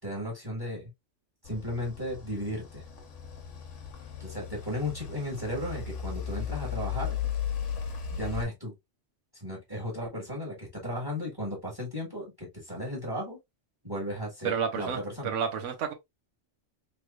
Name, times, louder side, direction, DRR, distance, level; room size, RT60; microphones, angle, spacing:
voice 1, 0.0-0.9 1.4-2.8 4.2-7.2 8.1-8.7 9.4-13.4 13.8-15.3, left 1 dB, 20° right, 1.7 m, -35 dB
sound 1, 1.4-8.4, left 8 dB, 80° left, 1.2 m, -36 dB
voice 2, 14.4-15.9, right 7 dB, 80° right, 1.1 m, -31 dB
3.4 x 3.2 x 2.3 m
omnidirectional pair, 1.3 m